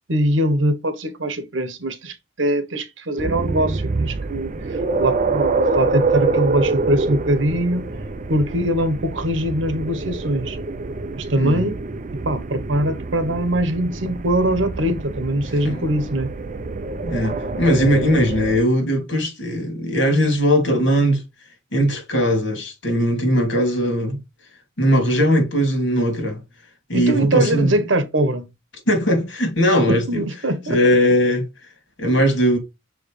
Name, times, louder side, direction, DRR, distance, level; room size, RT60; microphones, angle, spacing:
voice 1, 0.1-7.8 8.3-10.6 11.2-11.8 12.2-16.3 26.9-28.5 29.9-30.8, right 1 dB, 80° right, 1.2 m, -22 dB
sound 1, 3.2-18.6, right 3 dB, 40° right, 0.6 m, -26 dB
voice 2, 11.4-11.7 15.6-15.9 17.0-21.2 21.7-24.2 24.8-26.4 26.9-27.8 28.9-30.2 30.7-31.4 32.0-32.6, equal, 70° left, 2.8 m, -19 dB
6.4 x 4.8 x 3.2 m
head